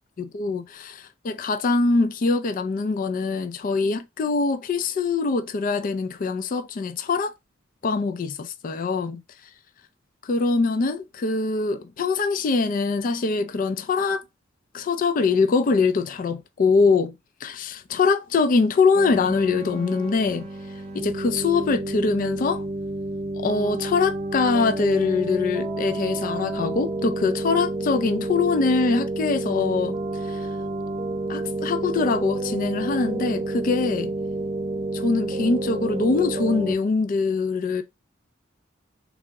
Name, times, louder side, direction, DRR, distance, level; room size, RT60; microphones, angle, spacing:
voice 1, 0.2-7.3 7.8-9.2 10.2-14.2 14.7-17.1 17.4-20.5 20.9-22.6 23.4-30.0 30.3-30.5 31.3-34.1 34.9-37.8, left 4 dB, 45° left, 0.3 m, -23 dB
sound 1, 18.9-36.7, right 2 dB, 30° right, 0.7 m, -30 dB
3.6 x 2.0 x 3.3 m
head